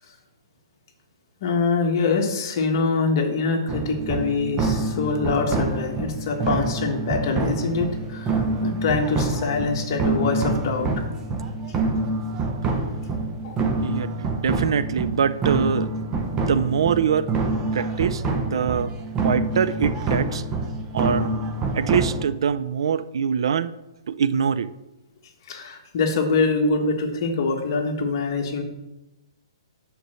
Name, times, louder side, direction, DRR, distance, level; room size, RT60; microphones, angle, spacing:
voice 1, 1.4-11.0 13.4-13.6 25.5-28.6, left 4 dB, 45° left, 2 dB, 1.4 m, -24 dB
sound 1, 3.7-22.2, right 3 dB, 20° right, 0.8 m, -26 dB
voice 2, 13.8-15.9 16.3-17.3 17.7-18.9 19.2-20.4 20.9-21.3 21.7-23.7 24.1-24.7, right 7 dB, 70° right, 15 dB, 0.4 m, -23 dB
6.8 x 4.4 x 6.4 m, 0.96 s
hypercardioid pair, 150°, 3 cm